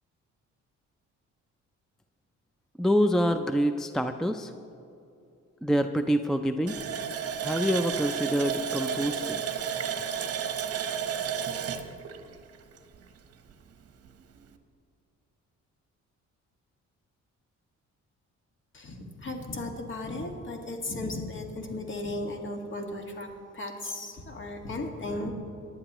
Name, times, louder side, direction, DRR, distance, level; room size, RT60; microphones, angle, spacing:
voice 1, 2.8-4.5 5.6-6.8 7.4-9.4, equal, ahead, 8 dB, 0.4 m, -26 dB
Water tap faucet, 6.7-13.2 13.5-13.6 14.0-14.2, right 7 dB, 50° right, 1.0 m, -32 dB
voice 2, 18.7-23.3 23.5-25.3, left 2 dB, 40° left, 3 dB, 1.8 m, -35 dB
19.0 x 11.0 x 3.0 m, 2.6 s
cardioid pair, 90°, 30 cm